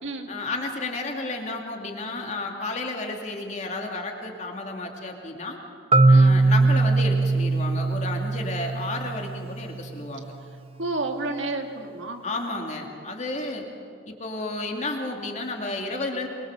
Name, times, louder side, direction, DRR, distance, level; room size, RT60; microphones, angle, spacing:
voice 1, 0.3-5.6 6.1-10.2 12.2-13.7 14.0-16.3, left 2 dB, 40° left, 2 dB, 2.5 m, -32 dB
Marimba xylophone, 5.9-9.8, right 3 dB, 30° right, 0.8 m, -20 dB
voice 2, 10.8-12.3, right 2 dB, 85° right, 4 dB, 2.2 m, -30 dB
24.0 x 23.0 x 6.8 m, 2.4 s
head